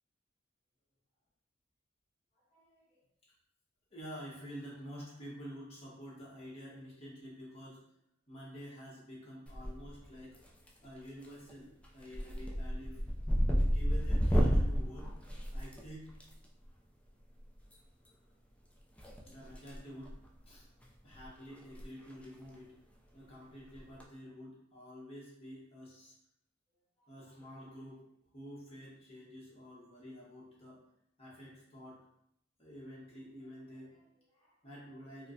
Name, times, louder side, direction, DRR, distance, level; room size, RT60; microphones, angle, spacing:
voice 1, 2.5-3.0 3.9-7.8 8.3-10.4 10.8-13.0 13.6-15.1 15.5-16.1 18.1-18.2 19.2-20.7 21.0-22.8 23.1-26.1 27.1-28.0 28.3-30.8 31.2-32.0 32.6-35.3, equal, 30° left, -5 dB, 1.1 m, -49 dB
sound 1, 9.5-10.0 10.3-10.9 11.2-11.5 11.8-16.2 17.6-17.7 19.0-19.8 20.1-20.3 20.8-20.9 21.2-21.3 21.6-21.8 22.1-22.2 23.7-24.0, equal, 5° left, 0.4 m, -31 dB
4.3 x 2.1 x 2.6 m, 0.75 s
head